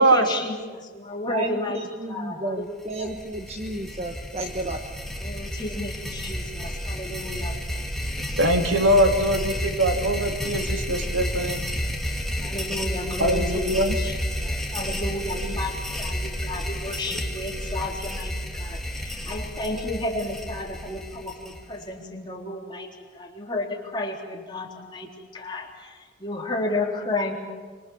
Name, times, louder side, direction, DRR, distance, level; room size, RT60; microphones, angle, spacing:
voice 1, 0.0-1.8 2.1-3.1 5.2-7.6 12.4-14.1 14.4-22.9 23.1-25.9 26.2-27.3, left 1 dB, 25° left, -1 dB, 3.7 m, -32 dB
voice 2, 1.3-4.8, right 2 dB, 30° right, 4 dB, 1.3 m, -32 dB
sound 1, 2.8-21.9, equal, ahead, 2.6 m, -31 dB
voice 3, 8.4-11.6 13.2-14.0, right 1 dB, 80° right, 4 dB, 2.5 m, -22 dB
26.0 x 25.5 x 7.3 m, 1.5 s
head